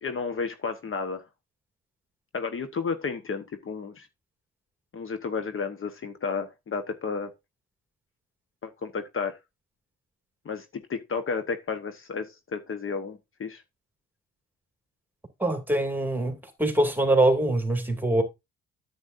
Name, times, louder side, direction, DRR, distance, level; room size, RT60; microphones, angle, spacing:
voice 1, 0.0-1.2 2.3-4.1 4.9-7.3 8.6-9.4 10.4-13.6, left 5 dB, 45° left, 1.1 m, -32 dB
voice 2, 15.4-18.2, right 1 dB, 5° right, 2.5 m, -23 dB
9.5 x 8.1 x 2.6 m
cardioid pair, 90°, 30 cm